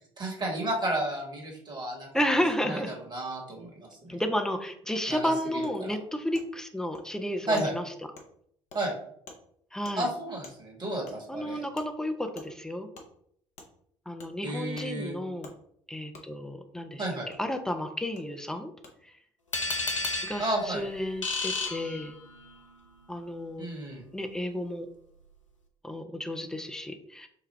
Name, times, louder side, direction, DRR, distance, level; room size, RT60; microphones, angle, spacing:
voice 1, 0.2-2.1 2.6-4.1 5.1-5.9 7.5-7.7 8.7-8.9 10.0-11.6 14.4-15.1 17.0-17.3 20.4-20.8 23.6-24.0, right 1 dB, 30° right, -1 dB, 1.3 m, -32 dB
voice 2, 2.1-2.9 4.1-7.8 9.7-10.1 11.3-12.9 14.1-15.5 15.9-17.1 17.4-18.7 20.2-22.1 23.1-23.7 24.1-24.9 25.8-27.3, equal, 5° left, 6 dB, 0.5 m, -32 dB
Wood, 5.6-5.7 6.3-6.5 6.9-7.1 7.6-7.7 8.2-8.3 8.7-8.8 9.3-9.4 9.8-10.0 10.4-10.6 11.1-11.2 11.8-11.9 12.4-12.5 12.9-13.1 13.6-13.7 14.2-14.3 14.8-14.9 15.4-15.6 16.1-16.3 17.3-17.4 18.2-18.3 18.8-18.9, left 3 dB, 50° left, 0.8 m, -47 dB
sound 1, 19.5-22.5, left 3 dB, 90° left, 0.4 m, -33 dB
4.7 x 2.3 x 3.2 m, 0.68 s
figure-of-eight pair, 55°, 16 cm